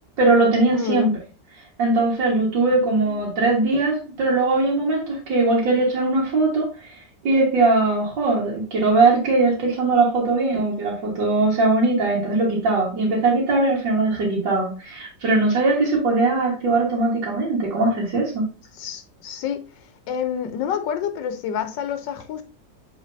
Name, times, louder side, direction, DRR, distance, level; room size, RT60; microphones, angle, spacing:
voice 1, 0.2-1.1 1.8-6.9 7.2-18.4, right 3 dB, 80° right, 2.3 m, -20 dB
voice 2, 0.7-1.1 3.0-3.2 18.7-19.6 20.1-22.4, left 8 dB, 85° left, 1.4 m, -28 dB
8.0 x 4.4 x 2.6 m
omnidirectional pair, 1.9 m